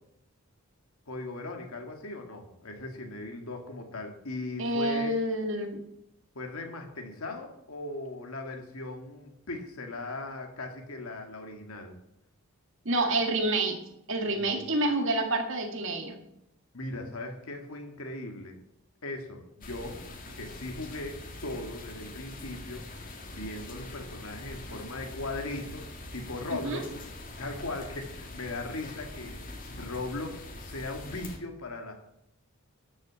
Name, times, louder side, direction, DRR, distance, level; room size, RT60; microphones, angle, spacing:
voice 1, 1.1-5.1 6.4-12.0 14.2-14.7 16.7-18.6 19.0-20.0 20.4-25.9 26.1-26.9 27.4-29.4 29.7-31.9, left 2 dB, 75° left, 3 dB, 2.0 m, -38 dB
voice 2, 4.6-5.8 12.9-13.8 14.1-16.2 26.6-26.8, right 2 dB, 60° right, 4 dB, 2.0 m, -28 dB
sound 1, 19.6-31.4, left 2 dB, 40° left, 2.0 m, -43 dB
13.0 x 6.6 x 7.4 m, 0.81 s
head